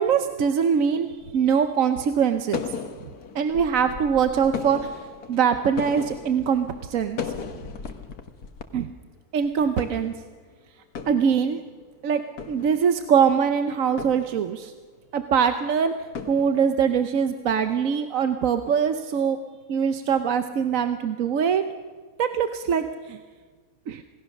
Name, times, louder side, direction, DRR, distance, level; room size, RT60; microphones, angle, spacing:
voice 1, 0.0-2.7 3.3-4.9 5.3-7.2 8.7-8.9 9.3-10.1 11.1-11.6 12.0-12.2 12.5-14.7 15.1-15.9 16.3-19.4 19.7-21.6 22.2-23.2 23.9-24.0, right 7 dB, 60° right, 8 dB, 1.2 m, -23 dB
sound 1, 0.7-1.6 2.5-8.6 8.9-9.0 9.4-10.5 10.8-11.8 12.2-13.2 14.0-14.9 16.1-17.2, left 6 dB, 75° left, 1.8 m, -37 dB
27.5 x 18.5 x 6.5 m, 1.5 s
omnidirectional pair, 1.6 m